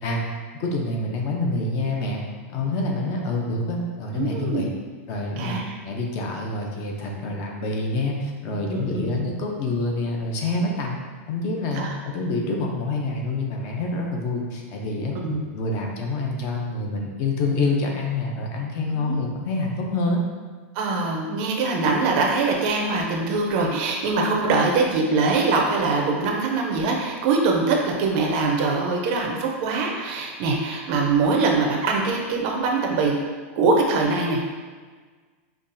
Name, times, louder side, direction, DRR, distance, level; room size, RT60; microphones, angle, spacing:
voice 1, 0.6-2.2 2.5-4.7 5.1-5.5 5.8-11.0 11.3-15.1 15.5-20.2, left 2 dB, 35° left, 0 dB, 0.5 m, -27 dB
voice 2, 4.1-4.7 5.4-5.7 8.5-9.1 11.8-12.0 15.2-15.4 18.9-19.2 20.7-33.2 33.6-34.5, right 3 dB, 40° right, 0 dB, 0.5 m, -23 dB
5.3 x 2.3 x 2.6 m, 1.5 s
supercardioid pair, 165°, 8 cm